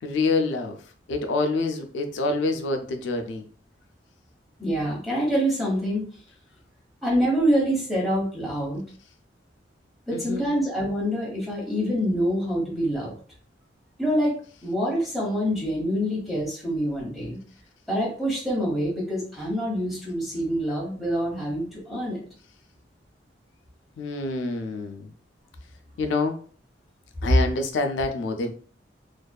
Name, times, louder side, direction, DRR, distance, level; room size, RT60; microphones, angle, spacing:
voice 1, 0.0-0.8 1.1-3.4 10.1-10.6 24.0-25.1 26.0-26.4 27.2-28.5, left 3 dB, 90° left, 6 dB, 0.4 m, -27 dB
voice 2, 4.6-6.0 7.0-8.8 10.1-13.1 14.0-17.4 17.9-22.2, equal, ahead, -5 dB, 1.0 m, -26 dB
2.6 x 2.2 x 2.2 m, 0.44 s
head